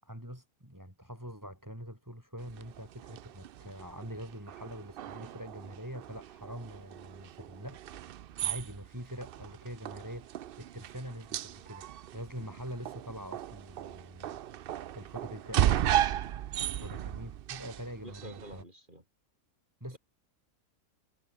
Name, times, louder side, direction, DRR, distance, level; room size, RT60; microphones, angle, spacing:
voice 1, 0.0-7.8 8.4-11.8 12.1-14.3 14.9-15.9 16.8-18.6 19.8-20.0, equal, 10° right, 6.6 m, -44 dB
sound 1, 2.4-18.6, right 11 dB, 70° right, 0.5 m, -36 dB
voice 2, 16.7-17.0 18.0-19.0, right 1 dB, 35° right, 6.0 m, -48 dB
omnidirectional pair, 1.5 m